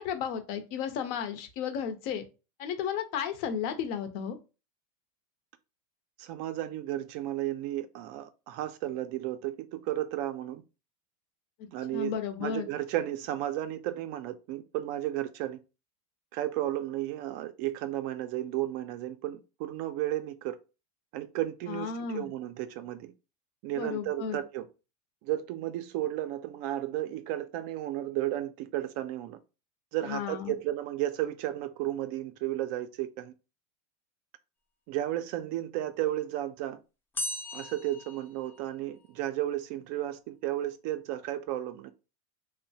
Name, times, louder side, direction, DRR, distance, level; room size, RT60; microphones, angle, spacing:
voice 1, 0.0-2.2 2.6-4.4 11.9-12.7 21.7-22.3 23.8-24.4 30.0-30.5, left 7 dB, 50° left, 0.6 m, -33 dB
voice 2, 6.2-10.6 11.7-12.1 12.4-15.6 16.3-20.6 21.1-23.1 23.6-24.7 25.2-29.4 29.9-33.3 34.9-36.8 37.5-41.9, right 13 dB, 50° right, 0.4 m, -33 dB
sound 1, 37.1-39.1, left 2 dB, 10° left, 0.5 m, -38 dB
2.9 x 2.1 x 2.7 m
supercardioid pair, 135°, 20 cm